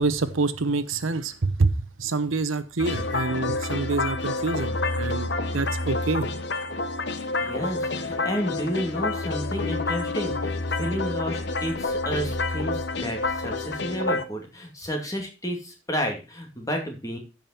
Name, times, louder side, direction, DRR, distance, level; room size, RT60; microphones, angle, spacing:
voice 1, 0.0-6.3, right 3 dB, 85° right, 13 dB, 0.9 m, -26 dB
sound 1, 2.8-14.2, left 3 dB, 55° left, 1.1 m, -28 dB
voice 2, 7.2-17.2, equal, 15° left, 2 dB, 2.6 m, -31 dB
14.5 x 5.4 x 4.3 m, 0.30 s
head